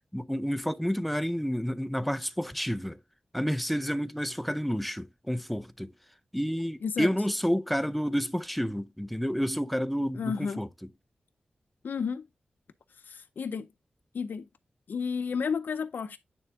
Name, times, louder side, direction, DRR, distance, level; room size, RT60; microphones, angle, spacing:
voice 1, 0.1-3.0 3.3-5.9 6.3-10.7, equal, ahead, 0.4 m, -30 dB
voice 2, 10.1-10.6 11.8-12.3 13.0-13.7 14.1-14.5 14.9-16.2, left 6 dB, 75° left, 0.5 m, -32 dB
9.3 x 3.5 x 3.5 m
wide cardioid pair, 140°, 3 cm